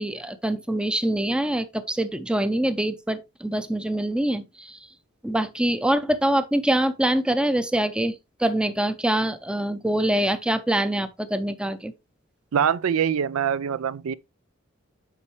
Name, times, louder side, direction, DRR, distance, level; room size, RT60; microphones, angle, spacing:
voice 1, 0.0-4.8 5.2-11.9, right 1 dB, 5° right, 0.5 m, -24 dB
voice 2, 12.5-14.1, right 8 dB, 80° right, 0.4 m, -24 dB
8.3 x 5.3 x 3.2 m
head